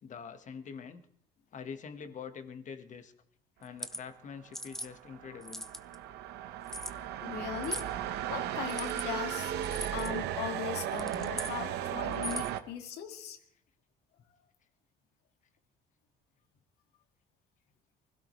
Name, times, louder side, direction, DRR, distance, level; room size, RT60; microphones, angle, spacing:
voice 1, 0.0-1.0 1.5-3.1 3.6-5.6, left 6 dB, 45° left, 8 dB, 1.5 m, -45 dB
sound 1, 3.6-4.0 4.5-4.9 5.4-5.9 6.7-6.9 7.6-7.9 8.6-9.1 9.6-10.1 10.8-11.5 12.1-12.6, equal, ahead, 0.7 m, -40 dB
sound 2, 4.6-12.6, right 11 dB, 85° right, 1.0 m, -36 dB
voice 2, 7.2-7.8 8.3-9.5 9.9-13.4, left 8 dB, 75° left, 6 dB, 2.1 m, -39 dB
24.0 x 16.5 x 3.2 m, 0.70 s
cardioid pair, 110°, 17 cm